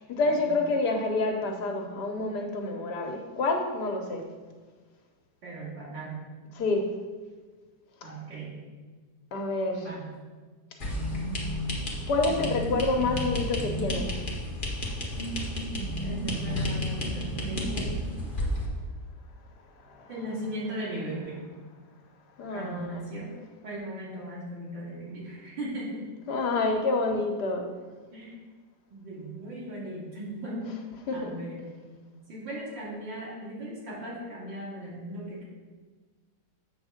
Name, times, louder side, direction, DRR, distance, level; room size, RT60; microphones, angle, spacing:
voice 1, 0.0-4.3 6.5-7.0 9.3-9.9 12.1-14.1 19.8-20.1 22.4-23.0 26.3-27.7 31.1-31.3, left 3 dB, 70° left, 3 dB, 1.3 m, -28 dB
voice 2, 5.4-6.3 8.0-8.6 9.8-10.1 16.0-18.0 20.1-21.4 22.5-23.3 23.6-26.0 28.1-28.4 28.9-30.7 31.1-31.7 32.3-35.4, right 1 dB, 85° right, -7 dB, 2.9 m, -38 dB
sound 1, 10.8-18.7, equal, 30° left, 1.3 m, -31 dB
7.9 x 3.6 x 6.3 m, 1.4 s
omnidirectional pair, 1.9 m